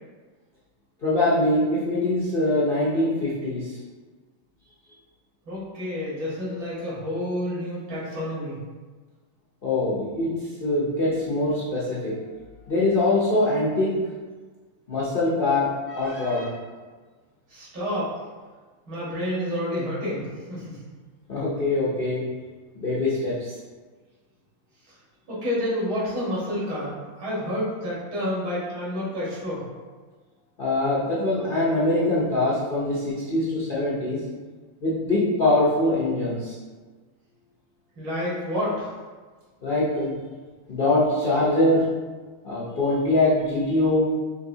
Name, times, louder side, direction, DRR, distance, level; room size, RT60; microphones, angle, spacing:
voice 1, 1.0-3.8 9.6-10.3 10.6-12.1 12.7-13.9 14.9-16.5 21.3-22.2 22.7-23.6 30.6-34.2 34.8-36.5 39.6-40.2 40.7-41.8 42.4-44.1, left 2 dB, 85° left, -8 dB, 0.4 m, -23 dB
voice 2, 5.5-8.6 17.5-18.1 18.9-20.8 25.3-29.6 38.0-38.9, left 1 dB, 70° right, -8 dB, 2.4 m, -29 dB
5.2 x 2.8 x 2.7 m, 1.4 s
omnidirectional pair, 2.2 m